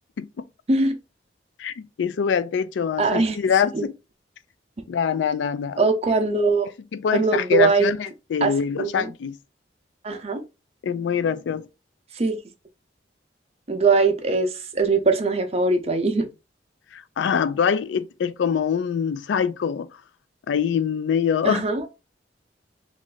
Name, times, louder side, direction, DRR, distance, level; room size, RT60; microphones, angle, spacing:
voice 1, 1.6-3.9 4.9-5.8 6.9-9.3 10.8-11.7 16.9-19.9 20.5-21.6, left 7 dB, 85° left, 0.3 m, -24 dB
voice 2, 3.0-3.4 3.7-3.8 5.8-6.7 7.1-7.9 8.4-8.5 8.8-9.1 10.0-10.4 12.1-12.4 13.7-16.3 21.4-21.9, right 3 dB, 35° right, 0.6 m, -21 dB
3.1 x 2.5 x 3.8 m
head